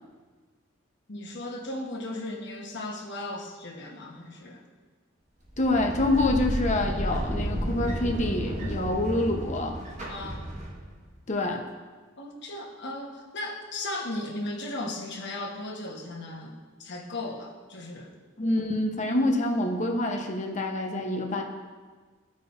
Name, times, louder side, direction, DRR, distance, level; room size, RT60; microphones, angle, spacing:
voice 1, 1.1-4.6 10.1-10.5 12.2-18.1, left 2 dB, 60° left, 0 dB, 1.2 m, -36 dB
sound 1, 5.4-11.1, equal, 40° right, 1.5 m, -32 dB
voice 2, 5.6-9.8 11.3-11.6 18.4-21.4, left 2 dB, 40° left, 2 dB, 0.9 m, -26 dB
15.5 x 5.2 x 2.6 m, 1.4 s
head